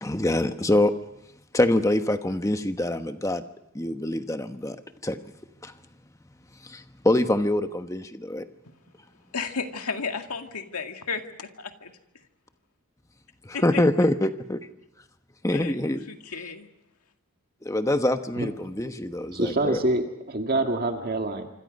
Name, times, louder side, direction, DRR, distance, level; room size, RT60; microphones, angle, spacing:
voice 1, 0.0-0.9 1.5-3.4 3.7-4.8 5.0-5.2 5.6-5.7 6.6-8.4 13.4-14.6 15.4-16.1 17.6-19.8, left 1 dB, 15° left, 8 dB, 1.0 m, -25 dB
voice 2, 9.3-11.9 13.5-13.8 15.5-15.7 16.1-16.7, left 5 dB, 90° left, 5 dB, 2.1 m, -33 dB
voice 3, 19.3-21.5, right 2 dB, 40° right, 4 dB, 2.0 m, -26 dB
26.0 x 26.0 x 5.4 m, 0.88 s
head